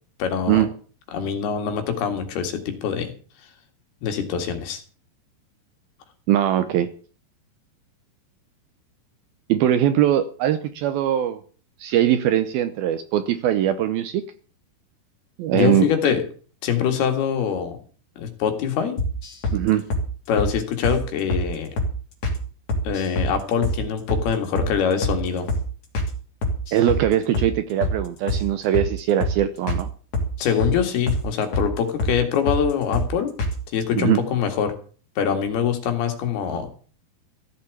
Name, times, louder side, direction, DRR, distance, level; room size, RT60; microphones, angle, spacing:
voice 1, 0.2-0.7 1.1-3.1 4.0-4.8 15.5-16.2 16.6-17.8 18.2-19.0 20.3-21.8 22.8-25.5 30.4-33.4 33.7-34.7 35.2-36.7, left 8 dB, 65° left, 6 dB, 3.8 m, -24 dB
voice 2, 6.3-6.9 9.5-11.4 11.8-14.2 15.4-15.9 19.5-19.8 26.7-29.9 33.9-34.2, right 11 dB, 75° right, 11 dB, 2.4 m, -21 dB
sound 1, 19.0-19.6 19.9-20.1 20.4-20.5 20.8-21.0 21.3-21.5 21.8-21.9 22.2-22.4 22.7-23.3 23.6-23.8 24.1-24.3 24.6-24.7 25.0-25.2 25.5-25.6 25.9-26.1 26.4-27.0 27.3-27.5 27.8-28.0 28.3-28.4 28.7-28.9 29.2-29.4 29.7-29.8 30.1-30.8 31.1-31.2 31.5-31.7 32.0-32.2 32.5-32.6 32.9-33.1 33.4-33.6, left 1 dB, 40° left, 3.7 m, -24 dB
15.0 x 7.3 x 8.2 m, 0.41 s
omnidirectional pair, 5.0 m